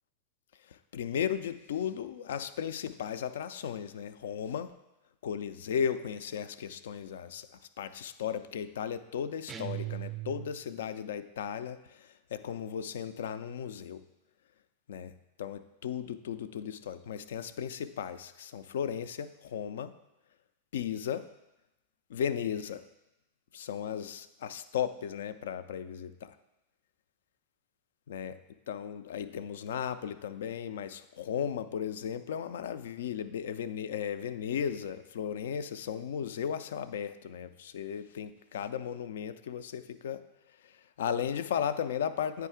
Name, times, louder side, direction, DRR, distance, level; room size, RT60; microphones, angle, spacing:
voice 1, 0.9-4.7 5.2-7.5 7.8-14.0 14.9-15.1 15.4-19.9 20.7-21.3 22.1-22.8 23.5-26.3 28.1-28.3 28.7-40.2 40.6-40.7 41.0-42.5, left 8 dB, 60° left, 13 dB, 0.3 m, -35 dB
sound 1, 9.5-10.8, right 14 dB, 25° right, 0.4 m, -39 dB
9.5 x 4.6 x 3.6 m, 0.95 s
figure-of-eight pair, 90°, 0 cm